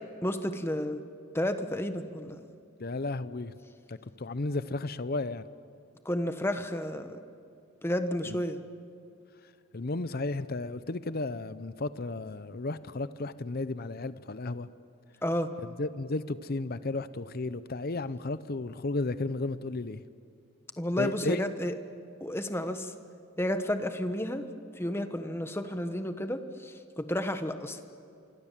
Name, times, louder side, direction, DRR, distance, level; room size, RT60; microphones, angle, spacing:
voice 1, 0.2-1.0 1.3-2.5 6.0-7.2 7.8-8.6 15.2-15.5 20.8-21.7 22.2-22.9 23.4-24.5 24.8-27.8, left 1 dB, 10° left, 1.2 m, -31 dB
voice 2, 2.8-3.5 3.9-5.4 8.3-8.4 9.7-14.7 15.8-20.0 21.0-21.4, left 2 dB, 45° left, 0.7 m, -33 dB
26.0 x 25.0 x 7.4 m
head